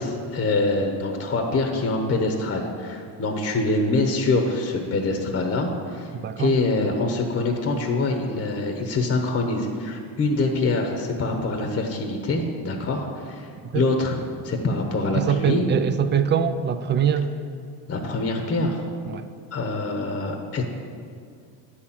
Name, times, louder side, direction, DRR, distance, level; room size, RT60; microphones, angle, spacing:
voice 1, 0.0-6.1 6.4-13.5 13.7-14.1 14.4-15.7 17.9-18.8 19.5-20.6, left 2 dB, 25° left, 3 dB, 0.9 m, -25 dB
voice 2, 6.1-6.6 13.7-13.9 15.1-17.3 19.1-19.3, right 7 dB, 25° right, 11 dB, 0.4 m, -23 dB
9.3 x 4.3 x 7.3 m, 2.3 s
supercardioid pair, 100°, 46 cm